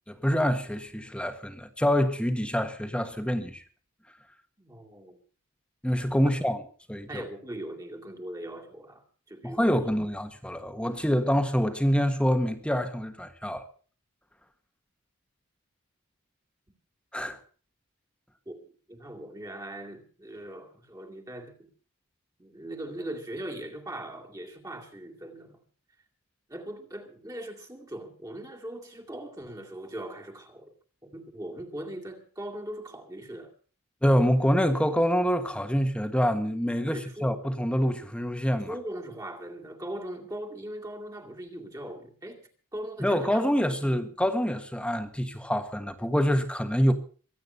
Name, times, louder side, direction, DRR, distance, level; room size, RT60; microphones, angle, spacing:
voice 1, 0.1-3.6 5.8-6.6 6.9-7.2 9.4-13.6 17.1-17.4 34.0-38.7 43.0-46.9, equal, 5° left, 1.5 m, -26 dB
voice 2, 4.6-5.2 7.1-9.9 18.5-21.7 22.4-25.6 26.5-30.7 31.0-33.5 36.9-37.4 38.7-42.4 42.7-43.8, right 1 dB, 15° right, 2.2 m, -40 dB
23.5 x 8.9 x 5.5 m
head